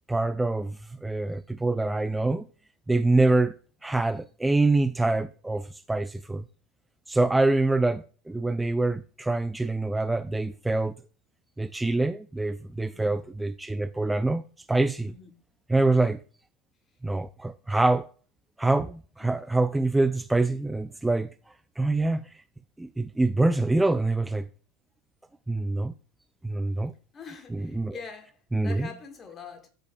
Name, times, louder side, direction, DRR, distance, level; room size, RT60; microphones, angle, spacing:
voice 1, 0.1-0.8 1.0-2.4 2.9-3.5 3.8-6.4 7.1-10.9 11.6-14.4 14.7-15.1 15.7-16.2 17.0-18.1 18.6-21.3 21.8-22.2 22.8-24.5 25.5-25.9 26.4-26.9 27.8-27.9 28.5-28.9, right 2 dB, 10° right, 0.3 m, -25 dB
voice 2, 15.1-15.4 15.8-16.1 19.2-19.3 27.1-29.7, left 5 dB, 30° left, 1.8 m, -44 dB
13.0 x 5.2 x 2.4 m
hypercardioid pair, 80°, 0 cm